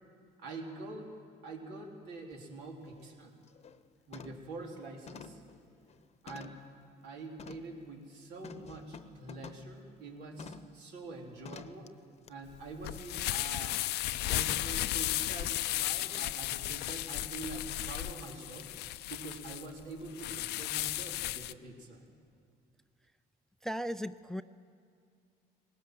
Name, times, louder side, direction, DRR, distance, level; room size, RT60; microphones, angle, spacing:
voice 1, 0.4-1.2 1.4-3.3 4.1-5.4 6.2-6.6 7.0-11.9 12.3-13.8 14.3-18.7 19.1-22.1, right 3 dB, 85° right, 0 dB, 3.6 m, -45 dB
sound 1, 2.3-2.4 2.9-3.1 3.5-3.8 4.1-4.5 5.1-6.7 7.4-7.7 8.4-9.7 10.4-10.8 11.4-11.9 12.3-12.4, left 5 dB, 40° left, 0.9 m, -49 dB
sound 2, 12.5-21.5, left 15 dB, 80° left, 0.5 m, -35 dB
voice 2, 23.6-24.4, equal, 5° left, 14 dB, 0.4 m, -36 dB
20.0 x 18.5 x 7.9 m, 2.2 s
cardioid pair, 110°, 17 cm